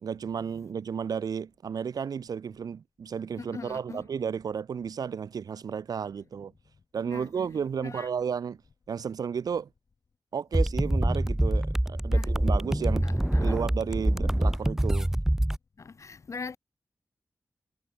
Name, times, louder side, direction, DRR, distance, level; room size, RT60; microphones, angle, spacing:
voice 1, 0.0-6.5 6.9-8.6 8.9-9.7 10.3-13.1 13.4-15.1, right 7 dB, 85° right, 1.3 m, -33 dB
voice 2, 3.4-4.1 7.1-7.3 7.8-8.1 12.1-12.3 13.0-13.6 15.8-16.6, left 5 dB, 55° left, 4.1 m, -41 dB
sound 1, 10.5-15.6, right 1 dB, 5° right, 0.8 m, -25 dB
wide cardioid pair, 135°, 6 cm